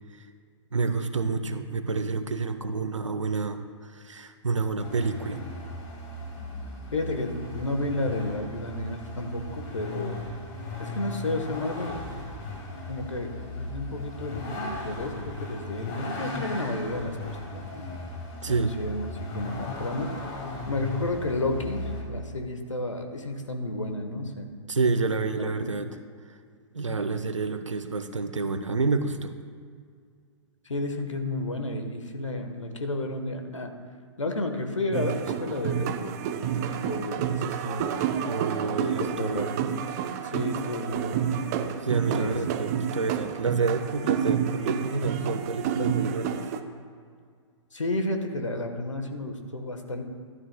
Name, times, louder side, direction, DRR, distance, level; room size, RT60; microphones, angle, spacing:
voice 1, 0.7-3.6 3.9-5.4 18.4-18.7 24.7-25.9 26.7-29.3 38.3-39.6 41.8-46.4, right 4 dB, 75° right, 9 dB, 0.7 m, -29 dB
Vehicle, 4.8-22.0, left 2 dB, 35° left, 1.9 m, -37 dB
voice 2, 6.9-10.2 10.8-12.0 12.9-17.8 18.5-20.1 20.7-24.5 25.0-25.7 26.9-27.2 30.6-33.7 34.2-36.2 36.4-38.0 38.6-39.7 40.2-41.4 42.1-42.3 42.7-42.9 47.7-50.0, left 2 dB, 75° left, 5 dB, 1.2 m, -32 dB
sound 1, 34.9-46.6, right 8 dB, 35° right, 0.5 m, -29 dB
12.5 x 12.0 x 2.2 m, 2.1 s
figure-of-eight pair, 110°, 16 cm